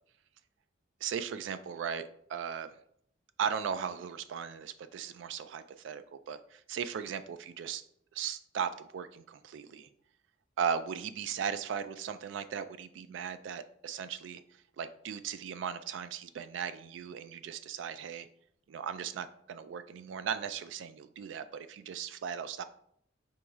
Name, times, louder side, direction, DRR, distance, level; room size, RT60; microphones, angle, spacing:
voice 1, 1.0-2.7 3.4-7.8 8.1-9.9 10.6-14.4 14.8-18.3 18.7-22.6, right 7 dB, 70° right, 12 dB, 0.3 m, -37 dB
4.6 x 3.0 x 3.5 m, 0.67 s
head